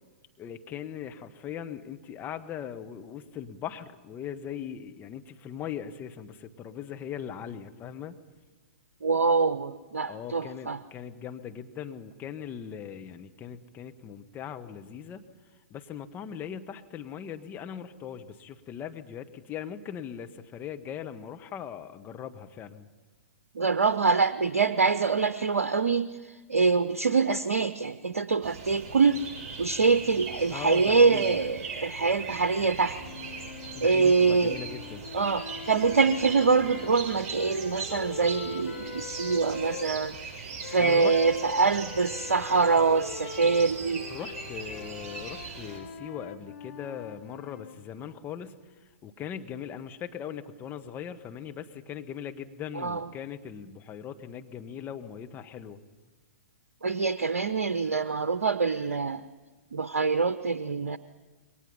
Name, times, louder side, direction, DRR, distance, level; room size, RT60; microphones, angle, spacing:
voice 1, 0.4-8.2 10.1-15.2 15.7-22.9 30.5-31.4 33.7-35.1 40.8-41.2 44.1-55.8, left 9 dB, 25° left, 7 dB, 1.5 m, -40 dB
voice 2, 9.0-10.8 23.5-26.1 26.5-29.2 29.6-33.0 33.8-34.6 35.1-40.1 40.6-44.0 52.8-53.0 56.8-59.2 59.7-61.0, right 4 dB, 75° right, 13 dB, 0.9 m, -24 dB
sound 1, 28.4-45.8, right 5 dB, 40° right, 7.7 m, -40 dB
sound 2, 32.9-39.9 40.6-47.8, left 6 dB, 60° left, 2.7 m, -42 dB
28.0 x 23.0 x 5.7 m, 1.3 s
figure-of-eight pair, 110°, 8 cm